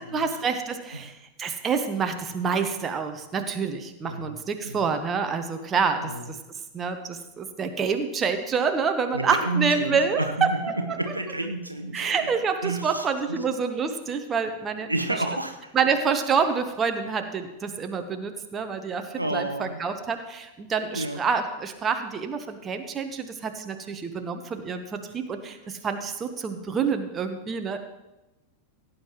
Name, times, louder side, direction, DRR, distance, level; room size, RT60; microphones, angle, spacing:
voice 1, 0.1-6.4 6.7-11.0 11.9-14.9 15.7-27.8, right 5 dB, 20° right, 6 dB, 1.0 m, -27 dB
voice 2, 4.0-4.4 4.6-4.9 6.0-6.3 9.1-10.6 11.0-12.3 12.6-13.4 14.9-15.9 19.2-19.8 20.9-21.2, right 2 dB, 85° right, 6 dB, 0.9 m, -30 dB
17.0 x 9.0 x 3.0 m, 1.0 s
figure-of-eight pair, 90°, 0 cm